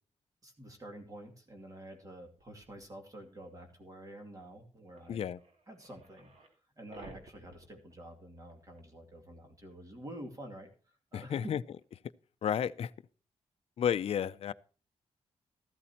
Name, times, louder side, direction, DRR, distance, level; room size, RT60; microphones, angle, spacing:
voice 1, 0.4-5.3 5.7-6.3 6.8-11.5, right 1 dB, 30° right, 2.5 m, -48 dB
sound 1, 2.4-2.8 4.1-4.2 4.5-4.6 4.9-6.6 6.9-8.5 8.8-8.9 9.7-9.8 11.8-11.9, right 2 dB, 65° right, 2.7 m, -55 dB
voice 2, 5.1-5.4 11.1-11.6 12.4-12.9 13.8-14.5, left 9 dB, 60° left, 0.5 m, -31 dB
14.0 x 12.5 x 2.9 m
cardioid pair, 100°, 11 cm